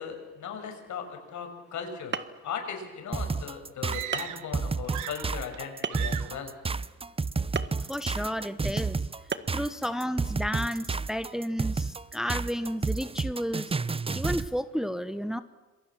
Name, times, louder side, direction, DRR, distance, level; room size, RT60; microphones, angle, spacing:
voice 1, 0.0-6.5, left 7 dB, 70° left, 5 dB, 6.3 m, -38 dB
sound 1, 1.7-1.8 2.1-2.5 3.3-3.4 4.1-4.4 5.8-6.2 7.5-7.8 9.3-9.6, right 6 dB, 35° right, 1.4 m, -33 dB
sound 2, 3.1-14.5, right 4 dB, 20° right, 0.8 m, -31 dB
sound 3, 3.8-4.6 4.8-5.6 5.9-6.4, right 13 dB, 80° right, 1.1 m, -38 dB
voice 2, 7.9-9.0 9.5-13.7 14.1-15.4, equal, ahead, 11 dB, 1.1 m, -32 dB
27.0 x 22.5 x 7.5 m, 1.2 s
cardioid pair, 90°, 30 cm